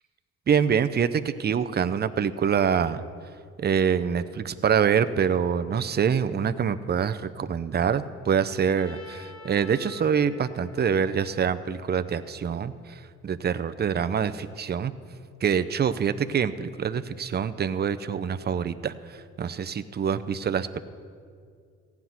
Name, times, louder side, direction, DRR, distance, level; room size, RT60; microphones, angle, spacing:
voice 1, 0.5-3.0 3.6-14.9 15.4-20.8, right 7 dB, 35° right, 11 dB, 0.6 m, -25 dB
Trumpet, 8.7-12.8, left 5 dB, 50° left, 2.1 m, -49 dB
15.5 x 5.9 x 9.4 m, 2.2 s
cardioid pair, 90°, 30 cm